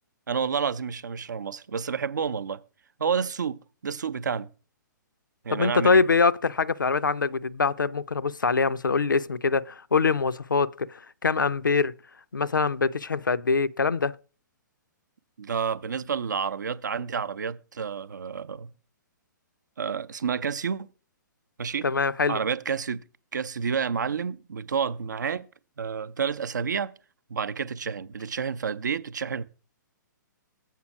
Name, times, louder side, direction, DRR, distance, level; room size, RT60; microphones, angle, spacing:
voice 1, 0.3-2.6 3.0-4.5 5.4-6.0 15.4-18.7 19.8-20.9 21.6-21.9 22.3-23.0 23.3-25.5 25.8-26.9 27.3-29.4, right 6 dB, 65° right, 0.5 m, -29 dB
voice 2, 5.5-11.9 12.3-14.2 21.8-22.4, left 4 dB, 75° left, 0.4 m, -24 dB
7.5 x 5.5 x 5.9 m
figure-of-eight pair, 120°, 11 cm